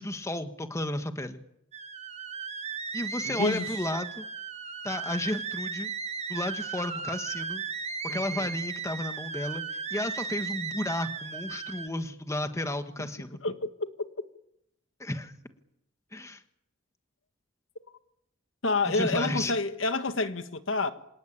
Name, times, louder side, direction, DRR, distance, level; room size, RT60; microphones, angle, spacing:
voice 1, 0.0-1.4 2.9-4.2 4.8-5.9 6.3-7.6 8.0-13.4 15.0-15.3 16.1-16.4 18.9-19.5, left 1 dB, 15° left, 1.4 m, -33 dB
sound 1, 1.7-11.9, right 5 dB, 30° right, 1.4 m, -36 dB
voice 2, 3.3-3.8 8.1-8.5 13.4-14.3 18.6-20.9, left 3 dB, 70° left, 1.6 m, -29 dB
27.0 x 18.5 x 8.8 m
head